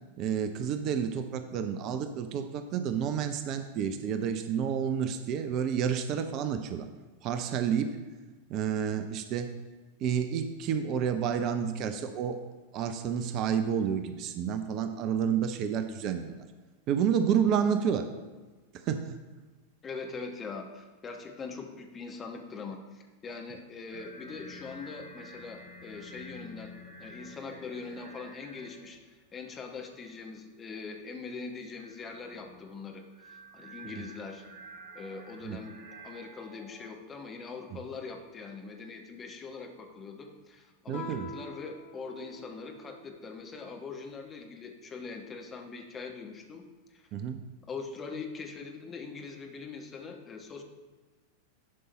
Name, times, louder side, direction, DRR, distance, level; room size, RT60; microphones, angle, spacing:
voice 1, 0.2-6.9 7.2-8.0 8.5-9.5 10.0-12.4 12.7-16.5 16.9-18.1 18.7-19.2 34.0-34.1 35.4-35.6 40.9-41.3 47.1-47.4, right 8 dB, 40° right, 9 dB, 0.6 m, -30 dB
voice 2, 19.8-26.7 27.0-34.4 34.9-35.7 36.0-46.6 46.9-47.0 47.7-50.6, left 4 dB, 20° left, 3 dB, 1.2 m, -42 dB
sound 1, 23.9-29.0 29.3-30.3 31.7-36.9, equal, 15° right, 2.1 m, -50 dB
Guitar, 40.9-43.4, left 1 dB, 50° left, 2.1 m, -45 dB
11.0 x 5.4 x 4.3 m, 1.3 s
figure-of-eight pair, 90°, 0 cm